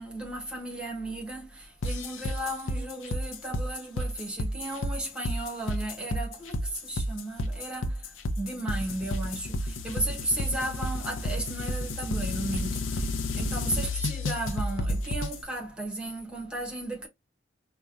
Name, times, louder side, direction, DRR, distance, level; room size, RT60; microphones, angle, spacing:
voice 1, 0.0-13.1 13.4-17.1, right 1 dB, 5° right, 1.1 m, -35 dB
sound 1, 1.8-15.4, left 1 dB, 75° left, 0.6 m, -31 dB
4.7 x 2.2 x 2.5 m
head